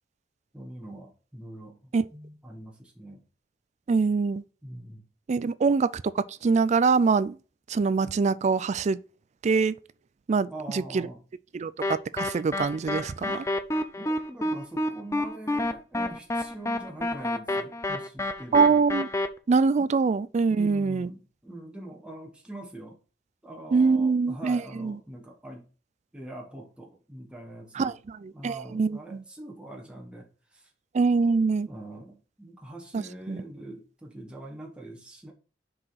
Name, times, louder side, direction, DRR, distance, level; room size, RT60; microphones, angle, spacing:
voice 1, 0.5-3.3 4.6-5.1 10.5-11.2 14.0-18.8 19.8-19.9 20.5-23.0 23.4-25.7 26.1-28.0 28.3-30.7 31.7-35.3, right 1 dB, 5° right, 1.2 m, -43 dB
voice 2, 3.9-4.4 5.3-7.4 7.7-9.0 9.4-9.8 10.3-11.1 11.5-13.5 18.5-19.1 19.5-21.1 23.7-24.9 27.8-29.2 30.9-31.7 32.9-33.0 33.3-33.4, right 4 dB, 40° right, 0.3 m, -24 dB
sound 1, 11.8-19.3, left 1 dB, 15° left, 0.6 m, -29 dB
6.1 x 4.9 x 4.1 m
head